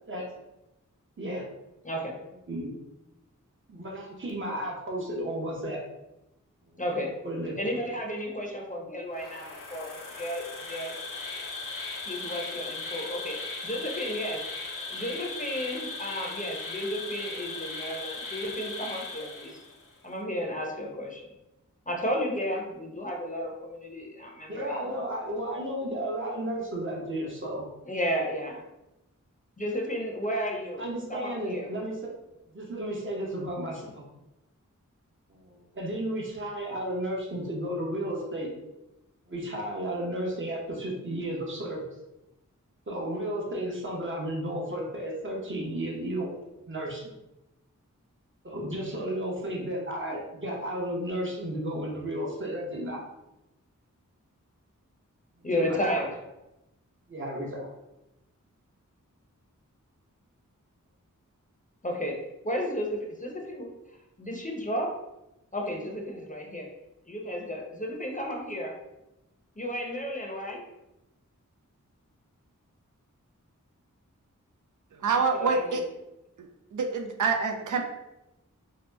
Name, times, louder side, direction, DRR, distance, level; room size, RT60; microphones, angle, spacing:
voice 1, 1.8-2.2 6.8-7.2 7.6-10.9 12.1-14.5 14.9-19.6 20.0-21.3 21.9-25.0 27.9-28.6 29.6-30.8 31.1-31.7 55.4-56.1 61.8-63.7 64.2-65.0 65.5-66.7 67.1-68.7 69.6-70.6 75.3-75.8, equal, 25° left, 0 dB, 0.6 m, -33 dB
voice 2, 3.7-5.8 7.2-7.6 24.5-27.7 30.3-30.5 30.8-32.1 32.5-34.0 35.3-38.5 39.3-41.8 42.9-46.3 46.5-47.1 48.4-53.0 55.5-56.0 57.1-57.7, right 1 dB, 40° right, -2 dB, 0.8 m, -33 dB
Insect, 9.1-19.9, left 3 dB, 75° left, 0.5 m, -38 dB
voice 3, 75.0-75.8 76.7-77.8, right 4 dB, 70° right, 3 dB, 0.5 m, -26 dB
2.8 x 2.0 x 3.3 m, 0.93 s
wide cardioid pair, 45°, 32 cm